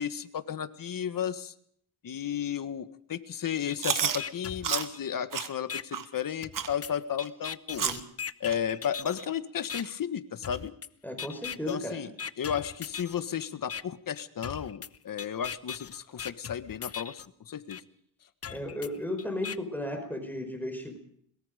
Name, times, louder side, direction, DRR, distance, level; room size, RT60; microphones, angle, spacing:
voice 1, 0.0-1.5 2.0-7.9 8.4-10.7 11.7-12.1 12.4-17.8, left 8 dB, 50° left, 10 dB, 1.7 m, -33 dB
sound 1, 3.7-3.8 4.2-5.2 5.7-5.8 6.4-9.3 9.7-9.8 10.4-10.9 11.2-11.8 12.2-13.2 13.7-13.8 14.4-17.3 17.7-17.8 18.4-19.6, left 7 dB, 35° left, 0.8 m, -39 dB
Chewing mastication, 3.8-4.2 4.6-4.9 5.3-5.5 5.9-6.0 6.5-6.7 7.2-7.3 7.8-8.0 8.5-8.6 9.2-9.3 9.8-9.9 10.5-10.6, right 7 dB, 50° right, 1.8 m, -30 dB
voice 2, 11.0-12.0 18.5-21.0, left 1 dB, 5° left, 5 dB, 5.0 m, -35 dB
22.5 x 22.0 x 5.2 m, 0.66 s
cardioid pair, 105°, 42 cm